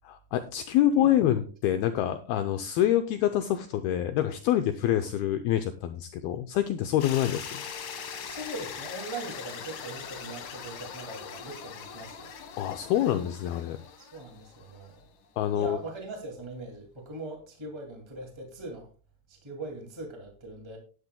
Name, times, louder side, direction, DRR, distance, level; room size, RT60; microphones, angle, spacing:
voice 1, 0.0-7.6 12.6-13.8 15.4-15.8, left 11 dB, 80° left, 8 dB, 2.4 m, -26 dB
sound 1, 7.0-15.0, left 7 dB, 60° left, 2.7 m, -41 dB
voice 2, 8.2-12.3 14.0-15.0 15.5-18.9 19.3-20.8, right 2 dB, 15° right, 1 dB, 1.1 m, -41 dB
16.0 x 11.0 x 2.3 m, 0.37 s
omnidirectional pair, 4.9 m